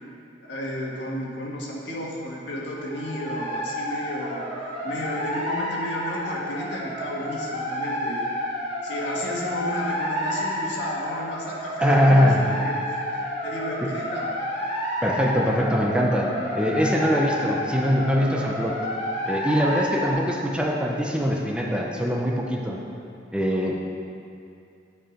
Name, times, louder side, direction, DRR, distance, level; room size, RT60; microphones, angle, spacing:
voice 1, 0.4-4.5 4.8-8.3 8.8-12.8 13.4-14.3, left 1 dB, 70° left, -3 dB, 1.5 m, -32 dB
sound 1, 2.7-20.1, equal, 40° left, 1.8 m, -30 dB
voice 2, 11.8-12.4 13.8-13.9 15.0-18.8 19.3-22.8 23.3-23.8, equal, 5° right, -1 dB, 0.6 m, -22 dB
10.0 x 4.8 x 5.1 m, 2.5 s
head